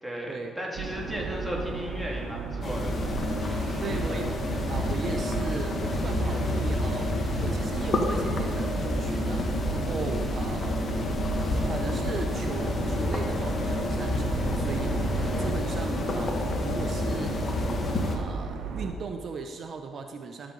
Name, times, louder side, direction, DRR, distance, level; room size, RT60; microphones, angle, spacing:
voice 1, 0.0-3.0, equal, 5° right, -3 dB, 2.2 m, -35 dB
sound 1, 0.8-18.9, right 4 dB, 80° right, 1.0 m, -34 dB
sound 2, 2.6-18.2, left 2 dB, 45° left, 1.3 m, -29 dB
sound 3, 3.0-15.5, right 2 dB, 25° right, 1.6 m, -38 dB
voice 2, 3.8-10.8 11.6-20.5, right 4 dB, 55° right, 5 dB, 0.6 m, -38 dB
12.5 x 7.7 x 3.9 m, 2.3 s
cardioid pair, 90°, 0 cm